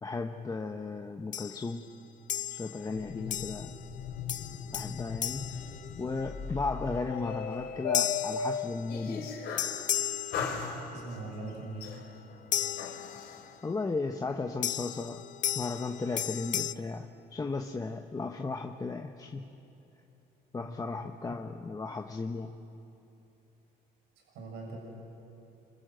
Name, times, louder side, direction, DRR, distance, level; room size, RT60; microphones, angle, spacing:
voice 1, 0.0-1.8 2.5-3.8 4.7-5.6 6.0-9.3 13.6-15.2 15.5-19.5 20.5-22.6, left 3 dB, 20° left, 5 dB, 1.0 m, -35 dB
sound 1, 1.3-1.7 2.3-2.9 3.3-3.9 4.3-6.4 7.9-9.1 9.6-11.0 12.5-13.5 14.6-16.7, left 10 dB, 50° left, 0.7 m, -35 dB
sound 2, 2.8-9.8 10.3-11.3 11.8-13.4, left 6 dB, 75° left, 3.8 m, -37 dB
voice 2, 10.4-11.9 20.6-20.7 24.3-24.8, right 2 dB, 85° right, -1 dB, 7.0 m, -41 dB
28.0 x 26.0 x 7.8 m, 2.8 s
cardioid pair, 110°, 17 cm